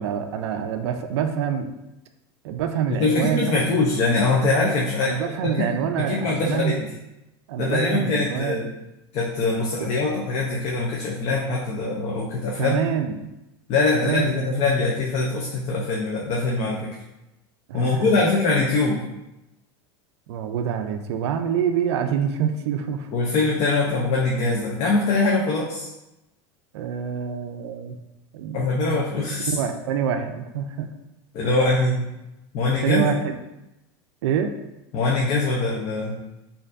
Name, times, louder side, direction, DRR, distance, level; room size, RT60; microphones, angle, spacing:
voice 1, 0.0-1.7 2.4-3.6 5.0-6.9 7.5-8.7 9.8-9.9 12.6-13.3 13.9-14.5 17.7-18.1 20.3-23.1 26.7-28.0 28.3-29.0 29.4-30.9 31.5-31.6 32.8-33.4 34.2-34.5, right 8 dB, 80° right, 7 dB, 0.4 m, -26 dB
voice 2, 3.0-5.7 6.1-6.8 7.6-8.7 9.1-12.8 13.7-16.9 17.7-19.0 23.1-25.9 28.5-29.6 31.3-32.0 32.5-33.0 34.9-36.2, left 3 dB, 50° left, -2 dB, 0.7 m, -23 dB
4.2 x 2.7 x 2.6 m, 0.94 s
supercardioid pair, 105°, 14 cm